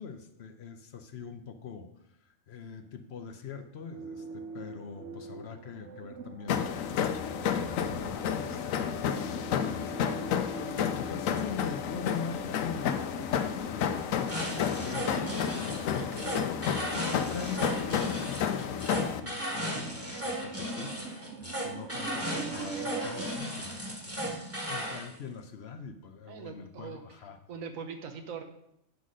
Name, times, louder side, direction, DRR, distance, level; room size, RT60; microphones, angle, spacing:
voice 1, 0.0-1.9 2.2-14.1 14.5-16.2 16.8-24.4 24.7-27.4, left 6 dB, 60° left, 8 dB, 0.9 m, -43 dB
sound 1, 3.9-23.4, right 5 dB, 65° right, 1.0 m, -45 dB
sound 2, 6.5-19.2, left 8 dB, 90° left, 1.0 m, -31 dB
sound 3, 14.3-25.1, equal, 10° right, 1.4 m, -36 dB
voice 2, 16.0-16.4 26.3-27.0 27.5-28.4, right 6 dB, 85° right, 5 dB, 1.3 m, -41 dB
9.3 x 4.0 x 6.2 m, 0.79 s
omnidirectional pair, 1.4 m